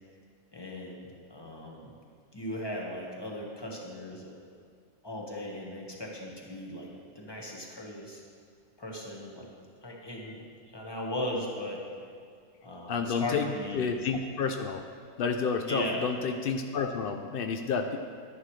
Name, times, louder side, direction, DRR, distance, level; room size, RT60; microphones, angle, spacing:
voice 1, 0.5-1.9 2.3-4.3 5.0-8.2 8.8-9.5 9.8-11.9 12.6-13.9 15.6-16.1, left 1 dB, 15° left, -2 dB, 1.3 m, -38 dB
voice 2, 12.9-13.4 13.7-14.8 15.2-18.0, left 5 dB, 80° left, 5 dB, 0.5 m, -30 dB
11.0 x 10.5 x 3.2 m, 2.2 s
omnidirectional pair, 1.6 m